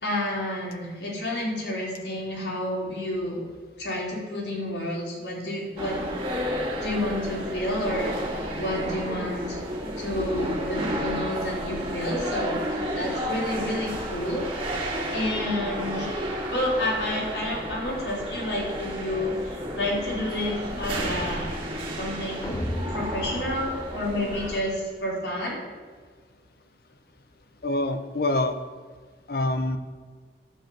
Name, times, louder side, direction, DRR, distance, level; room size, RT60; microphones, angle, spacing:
voice 1, 0.0-3.4 3.8-6.0 6.8-9.6 10.0-14.5 15.1-16.1 16.5-21.5 21.9-22.5 22.9-25.6, left 1 dB, 75° left, -4 dB, 3.5 m, -30 dB
sound 1, 5.8-24.6, equal, 30° right, 2.3 m, -32 dB
sound 2, 22.4-24.7, equal, 20° left, 0.7 m, -34 dB
voice 2, 27.6-28.6 29.3-29.8, left 2 dB, 55° left, 9 dB, 0.8 m, -25 dB
11.5 x 5.0 x 7.7 m, 1.5 s
head